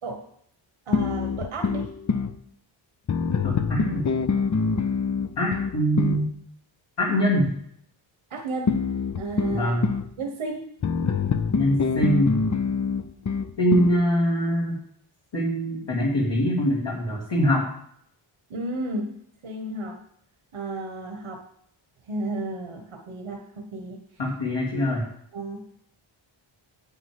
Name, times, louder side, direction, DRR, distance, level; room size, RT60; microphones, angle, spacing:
sound 1, 0.9-2.3 3.1-6.3 8.7-10.1 10.8-14.0, left 5 dB, 35° left, 0.7 m, -25 dB
voice 1, 0.9-1.9 8.3-8.8 9.1-9.8 10.2-10.6 18.5-19.1 19.4-20.0 20.5-21.4 22.1-24.0 25.3-25.6, right 2 dB, 80° right, 2 dB, 1.6 m, -32 dB
voice 2, 3.4-4.1 5.4-6.3 7.0-7.5 9.5-9.9 11.5-12.4 13.6-14.8 15.3-17.7 24.2-25.1, equal, 60° left, -5 dB, 2.5 m, -23 dB
9.8 x 8.5 x 4.9 m, 0.68 s
wide cardioid pair, 95°, 49 cm